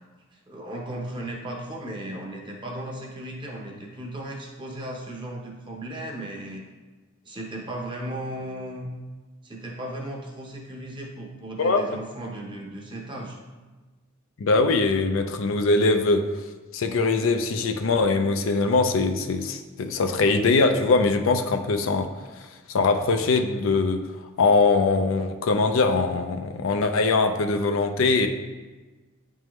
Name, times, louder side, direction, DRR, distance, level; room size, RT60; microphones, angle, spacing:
voice 1, 0.3-6.6 7.2-8.9 9.4-13.4, right 1 dB, 25° right, 0 dB, 0.8 m, -36 dB
voice 2, 11.6-12.0 14.4-16.2 16.7-22.1 22.7-24.0 24.4-28.3, left 3 dB, 70° left, 7 dB, 0.5 m, -22 dB
9.2 x 3.6 x 3.1 m, 1.3 s
head